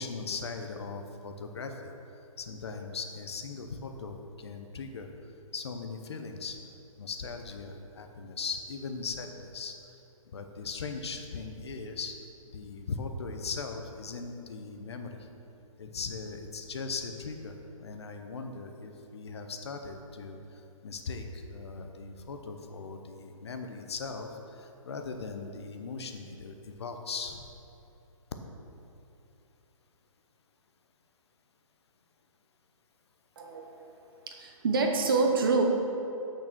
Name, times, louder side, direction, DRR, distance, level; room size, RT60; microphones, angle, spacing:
voice 1, 0.0-1.8 2.4-5.1 5.5-6.6 7.0-9.7 10.3-12.2 12.5-15.2 15.8-20.4 20.8-27.4, left 4 dB, 50° left, 5 dB, 0.7 m, -39 dB
voice 2, 33.4-33.7 34.3-35.6, right 4 dB, 40° right, 3 dB, 0.9 m, -26 dB
6.6 x 6.2 x 6.1 m, 2.9 s
hypercardioid pair, 170°, 18 cm